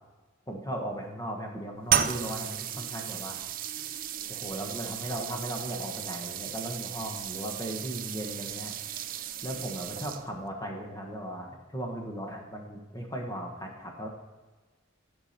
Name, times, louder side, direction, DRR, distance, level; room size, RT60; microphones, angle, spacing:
voice 1, 0.5-3.4 4.3-8.7 9.4-14.1, right 1 dB, 20° left, 1 dB, 1.3 m, -37 dB
sound 1, 1.9-10.5, right 10 dB, 45° right, 0.5 m, -34 dB
11.5 x 5.7 x 4.3 m, 1.3 s
head